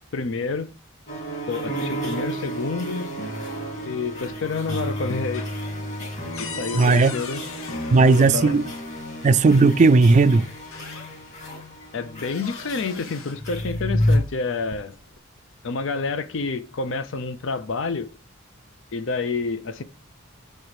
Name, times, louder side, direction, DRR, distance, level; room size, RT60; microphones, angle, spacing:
voice 1, 0.1-0.7 1.5-3.1 3.8-5.5 6.4-7.4 8.0-8.6 11.9-14.9 15.6-18.1 18.9-19.8, left 4 dB, 65° left, 0.6 m, -28 dB
sound 1, 1.1-14.2, equal, 35° left, 1.9 m, -30 dB
sound 2, 4.1-4.6 4.9-8.9 10.0-10.1 10.5-11.4 11.8-13.5 14.4-15.2, left 5 dB, 85° left, 1.0 m, -40 dB
voice 2, 6.7-7.1 7.9-8.7 9.2-10.5, right 3 dB, 35° right, 0.3 m, -16 dB
5.9 x 4.5 x 4.9 m
head